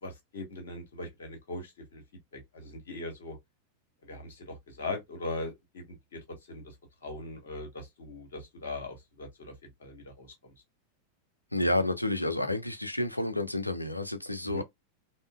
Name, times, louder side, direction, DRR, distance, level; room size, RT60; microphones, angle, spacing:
voice 1, 0.0-2.0 2.3-3.4 4.0-6.7 7.0-10.5 14.4-14.6, left 2 dB, 60° left, 1.2 m, -40 dB
voice 2, 11.5-14.6, left 1 dB, 85° left, 0.4 m, -30 dB
3.6 x 2.0 x 2.3 m
figure-of-eight pair, 90°, 0 cm